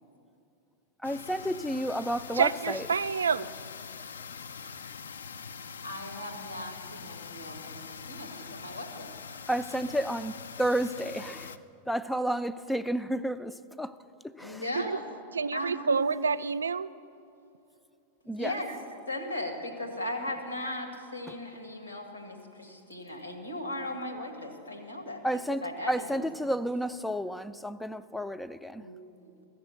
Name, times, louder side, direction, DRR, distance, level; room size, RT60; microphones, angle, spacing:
sound 1, 1.0-11.6, left 6 dB, 70° left, 0.4 m, -43 dB
voice 1, 1.0-2.9 9.5-11.6 11.9-13.9 14.2-14.6 18.3-18.6 21.3-21.4 25.2-28.9, right 1 dB, 5° left, 13 dB, 0.4 m, -31 dB
voice 2, 2.4-3.5 14.7-15.0 15.3-16.9, right 5 dB, 70° right, 15 dB, 0.3 m, -28 dB
voice 3, 5.8-9.1 14.4-15.0 15.5-16.1 18.2-18.7 19.1-25.2 25.5-26.2 28.8-29.5, left 1 dB, 85° left, 3 dB, 1.6 m, -38 dB
14.0 x 6.7 x 8.0 m, 2.7 s
figure-of-eight pair, 90°, 0 cm